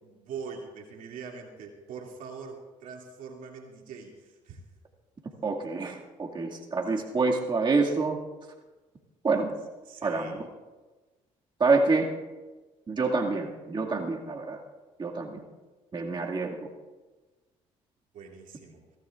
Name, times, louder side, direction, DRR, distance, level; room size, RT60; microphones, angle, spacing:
voice 1, 0.0-4.6 9.9-10.3 18.1-18.8, right 5 dB, 70° right, 0 dB, 2.6 m, -43 dB
voice 2, 5.4-8.2 9.2-9.6 10.0-10.5 11.6-12.1 12.9-14.6 15.0-15.4 15.9-16.7, right 3 dB, 35° right, -1 dB, 2.2 m, -27 dB
23.0 x 16.5 x 2.5 m, 1.2 s
supercardioid pair, 70°, 14 cm